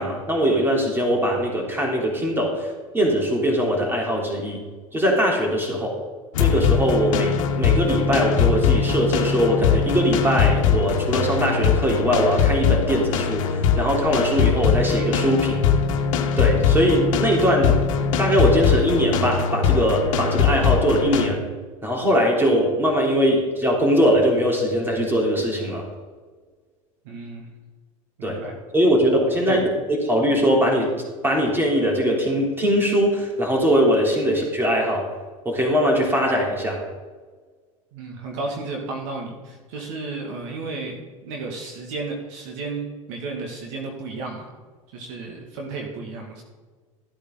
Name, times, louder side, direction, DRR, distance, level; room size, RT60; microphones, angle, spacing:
voice 1, 0.0-4.6 4.9-6.0 6.4-15.6 16.4-17.8 18.2-21.4 21.8-25.8 28.2-28.4 28.7-30.9 31.2-35.1 35.4-36.8, equal, 10° right, -1 dB, 3.5 m, -21 dB
sound 1, 6.3-21.3, left 7 dB, 70° left, 1.3 m, -21 dB
voice 2, 27.0-27.5 28.2-28.5 29.5-29.6 37.9-44.5 44.9-46.4, right 3 dB, 65° right, 1 dB, 2.2 m, -33 dB
14.0 x 8.6 x 4.0 m, 1.5 s
hypercardioid pair, 85°, 17 cm